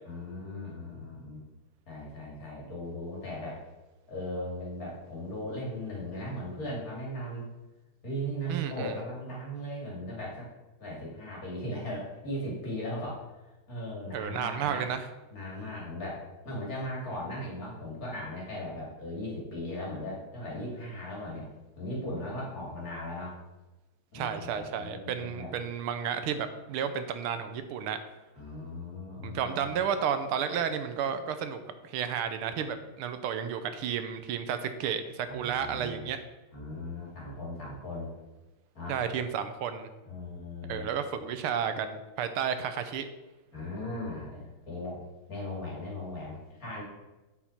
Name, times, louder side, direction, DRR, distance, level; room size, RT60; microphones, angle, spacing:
voice 1, 0.0-1.4 1.9-3.6 4.1-7.5 8.0-10.5 10.8-13.2 13.7-14.9 15.3-21.5 21.8-23.4 24.1-25.5 28.4-29.7 35.2-36.1 36.5-38.1 38.7-39.0 40.0-40.9 43.5-45.0 45.3-46.8, left 1 dB, 40° left, -4 dB, 3.1 m, -38 dB
voice 2, 8.5-8.9 14.1-15.1 24.1-28.0 29.2-36.2 38.9-39.9 40.7-43.1, right 8 dB, 85° right, 9 dB, 1.6 m, -32 dB
8.4 x 8.1 x 4.4 m, 1.1 s
omnidirectional pair, 2.3 m